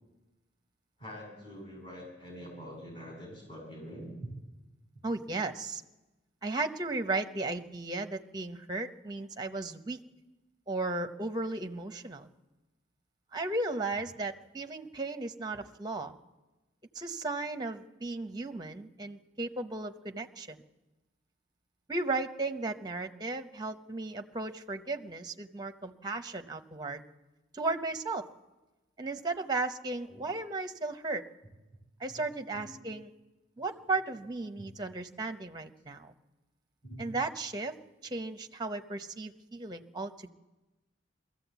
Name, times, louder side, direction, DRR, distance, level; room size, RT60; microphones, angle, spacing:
voice 1, 1.0-4.3 30.1-30.2 32.1-32.2 32.5-32.7 36.8-37.1, equal, 30° left, -3 dB, 7.3 m, -45 dB
voice 2, 5.0-5.8 6.4-10.0 10.7-12.3 13.3-16.1 16.9-20.6 21.9-27.0 27.5-28.2 29.0-31.2 32.0-33.1 33.6-36.1 37.0-37.7 38.0-40.3, right 3 dB, 20° right, 8 dB, 0.8 m, -35 dB
21.5 x 14.5 x 8.2 m, 1.1 s
head